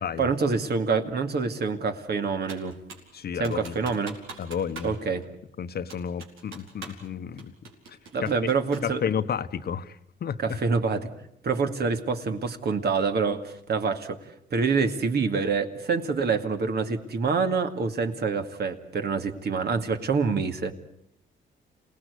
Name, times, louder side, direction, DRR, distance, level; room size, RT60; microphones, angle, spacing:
voice 1, 0.2-2.8 3.4-4.1 4.8-5.3 8.1-9.0 10.4-11.1 11.4-14.2 14.5-20.7, right 5 dB, 55° right, 6 dB, 2.4 m, -26 dB
Computer keyboard, 2.5-3.1 3.4-5.0 5.2-5.3 5.9-7.1 7.4-9.0, right 4 dB, 90° right, 4.8 m, -43 dB
voice 2, 3.1-3.9 4.4-4.9 5.6-7.5 7.9-8.3 8.8-10.6, left 7 dB, 55° left, 11 dB, 1.1 m, -32 dB
27.5 x 18.0 x 8.3 m, 0.73 s
cardioid pair, 90°, 20 cm